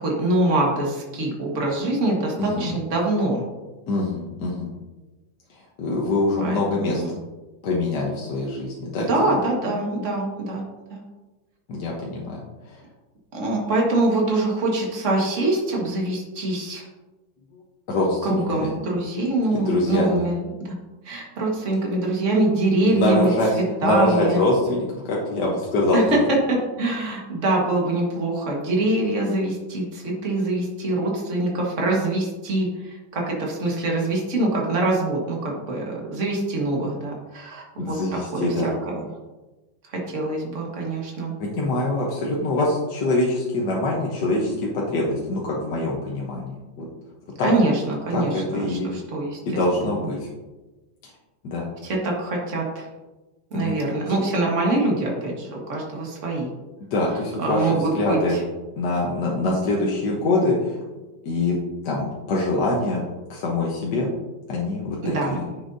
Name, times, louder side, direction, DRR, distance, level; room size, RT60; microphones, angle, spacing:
voice 1, 0.0-3.4 6.4-7.1 9.0-10.6 10.9-11.0 13.3-16.9 18.2-20.7 21.0-24.4 25.9-38.0 38.3-38.9 39.8-41.3 47.4-50.1 51.8-52.9 53.5-56.5 57.4-58.4 65.0-65.4, right 2 dB, 40° right, -2 dB, 1.9 m, -24 dB
voice 2, 2.4-2.7 3.9-4.7 5.8-7.0 7.6-9.4 11.7-12.4 12.7-12.8 17.9-18.7 19.5-20.2 22.8-23.5 23.8-26.2 37.8-38.7 41.4-46.9 47.4-47.5 48.1-48.9 49.4-50.3 51.4-51.7 53.5-53.9 56.9-58.4 58.8-60.8 61.2-61.6 61.8-63.0 63.3-64.1 64.5-65.4, left 2 dB, 60° left, -3 dB, 1.6 m, -24 dB
9.6 x 6.6 x 2.7 m, 1.1 s
omnidirectional pair, 2.1 m